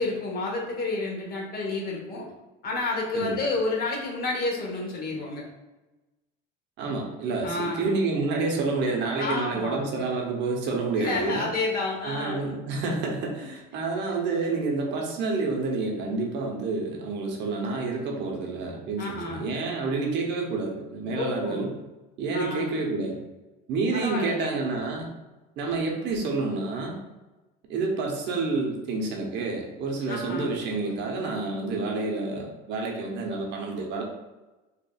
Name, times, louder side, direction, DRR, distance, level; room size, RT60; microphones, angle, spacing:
voice 1, 0.0-2.3 2.6-5.4 7.4-7.9 9.2-9.8 10.9-12.4 13.7-13.8 19.0-19.5 21.1-21.7 22.3-22.7 23.9-24.6 30.1-30.6, left 2 dB, 45° left, -1 dB, 1.2 m, -30 dB
voice 2, 6.8-11.5 12.0-21.7 22.2-23.2 23.7-25.1 25.6-27.0 27.7-34.0, right 3 dB, 60° right, 0 dB, 0.9 m, -29 dB
4.3 x 2.5 x 2.3 m, 1.1 s
supercardioid pair, 95°, 21 cm